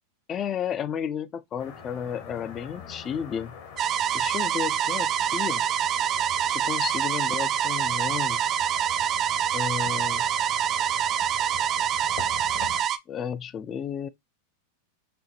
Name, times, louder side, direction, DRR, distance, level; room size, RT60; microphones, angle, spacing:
voice 1, 0.3-3.6 4.1-5.6 6.5-8.4 9.5-10.3 13.1-14.1, left 8 dB, 30° left, 0.3 m, -32 dB
sound 1, 1.6-12.8, left 6 dB, 55° left, 1.4 m, -43 dB
sound 2, 3.8-13.0, right 10 dB, 35° right, 0.4 m, -26 dB
5.9 x 2.1 x 2.8 m
hypercardioid pair, 95°, 0 cm